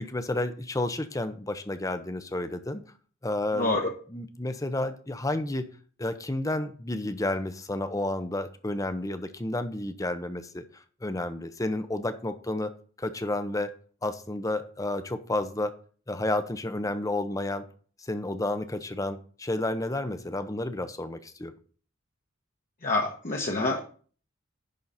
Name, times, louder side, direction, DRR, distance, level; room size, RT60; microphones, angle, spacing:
voice 1, 0.0-2.8 3.2-3.8 4.1-5.7 6.0-10.6 11.0-12.7 13.0-13.7 14.0-15.7 16.1-17.7 18.0-21.5, left 2 dB, 15° left, 10 dB, 0.7 m, -31 dB
voice 2, 3.5-3.9 22.8-23.8, left 2 dB, 40° left, 0 dB, 1.1 m, -27 dB
10.5 x 4.0 x 5.6 m, 0.43 s
head